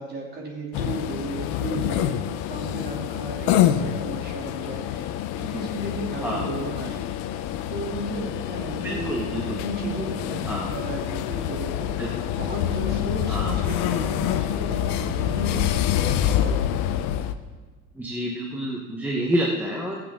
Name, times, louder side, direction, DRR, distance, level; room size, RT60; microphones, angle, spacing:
voice 1, 0.0-2.1 2.5-5.1 5.4-7.0 7.7-9.2 9.5-11.9 12.3-16.9, right 2 dB, 30° right, -2 dB, 2.8 m, -34 dB
sound 1, 0.7-17.3, left 11 dB, 75° left, 0.8 m, -26 dB
voice 2, 8.8-9.6 10.4-10.7 12.0-12.1 13.3-13.5 17.9-20.0, equal, 5° right, -2 dB, 1.0 m, -28 dB
22.0 x 7.7 x 3.7 m, 1.4 s
cardioid pair, 150°, 34 cm